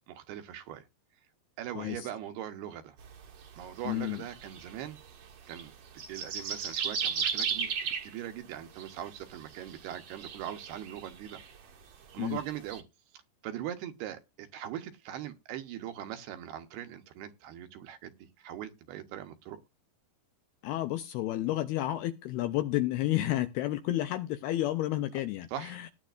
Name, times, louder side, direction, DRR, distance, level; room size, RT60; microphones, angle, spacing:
voice 1, 0.1-0.9 1.6-3.0 3.6-5.0 5.5-11.4 12.1-12.8 13.4-19.6 25.5-25.8, right 11 dB, 75° right, 2.8 m, -41 dB
voice 2, 1.8-2.1 3.9-4.2 12.2-12.4 20.6-25.9, left 15 dB, 80° left, 2.3 m, -31 dB
sound 1, 3.0-5.6 5.9-8.1 8.8-9.1 9.4-11.6 12.1-12.8, right 6 dB, 55° right, 1.8 m, -35 dB
18.5 x 9.7 x 2.5 m
omnidirectional pair, 5.1 m